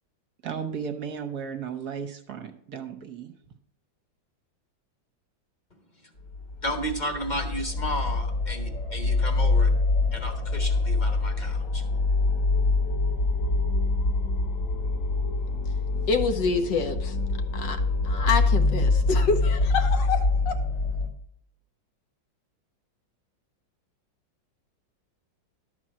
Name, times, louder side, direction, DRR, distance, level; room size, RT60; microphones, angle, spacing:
voice 1, 0.4-3.3, right 7 dB, 60° right, 1.3 m, -35 dB
sound 1, 6.3-21.1, left 3 dB, 50° left, 1.4 m, -25 dB
voice 2, 6.6-9.7 10.1-11.8, equal, 30° left, 1.1 m, -33 dB
voice 3, 16.1-17.2 17.5-17.8 18.0-20.5, left 5 dB, 70° left, 1.5 m, -27 dB
12.0 x 4.4 x 7.5 m
omnidirectional pair, 2.0 m